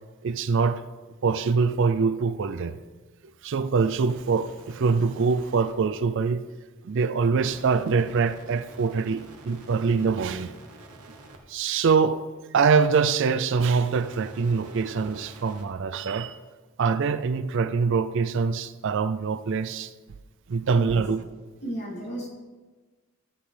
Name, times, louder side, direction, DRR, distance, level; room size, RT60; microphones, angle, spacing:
voice 1, 0.2-0.8 1.2-2.8 3.4-6.4 6.8-10.5 11.5-12.2 12.5-16.4 16.8-19.9 20.5-21.2, right 5 dB, 55° right, 12 dB, 0.4 m, -24 dB
sound 1, 4.1-5.7 7.4-11.4 13.5-15.7, right 2 dB, 90° right, 1.3 m, -48 dB
voice 2, 21.6-22.3, right 1 dB, 50° left, -4 dB, 2.9 m, -34 dB
14.0 x 7.4 x 3.4 m, 1.3 s
head